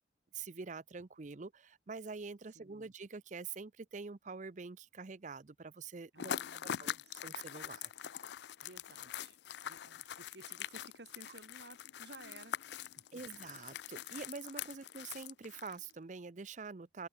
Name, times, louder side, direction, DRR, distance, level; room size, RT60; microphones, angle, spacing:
voice 1, 0.3-7.9 13.1-17.1, right 4 dB, 40° right, 0.6 m, -46 dB
voice 2, 2.5-2.9 6.1-7.2 8.6-9.4 9.6-13.2, right 2 dB, 60° right, 3.1 m, -57 dB
sound 1, 6.2-15.9, left 9 dB, 60° left, 0.4 m, -44 dB
open air
head